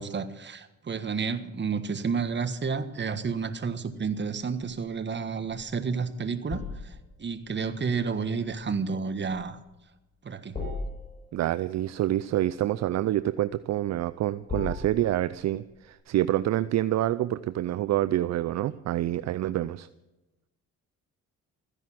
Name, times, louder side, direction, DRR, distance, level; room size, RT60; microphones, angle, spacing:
voice 1, 0.0-9.6 10.2-10.6, right 5 dB, 35° right, 10 dB, 1.5 m, -31 dB
sound 1, 5.7-16.0, left 3 dB, 30° left, 7.4 m, -42 dB
voice 2, 11.3-19.9, right 13 dB, 60° right, 15 dB, 0.5 m, -27 dB
15.0 x 10.5 x 7.5 m, 1.0 s
cardioid pair, 90°, 30 cm